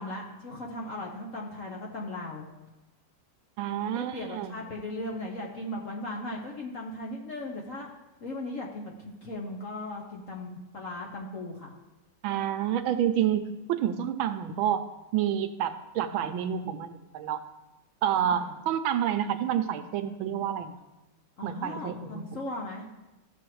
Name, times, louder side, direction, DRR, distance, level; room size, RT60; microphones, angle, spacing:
voice 1, 0.0-2.5 3.9-7.9 8.2-11.7 18.2-18.6 21.4-22.9, left 1 dB, 50° left, -1 dB, 1.0 m, -37 dB
voice 2, 3.6-4.6 12.2-14.8 15.1-17.4 18.0-20.8 21.4-22.3, right 10 dB, 75° right, 9 dB, 1.3 m, -29 dB
14.5 x 6.3 x 3.1 m, 1.0 s
omnidirectional pair, 2.3 m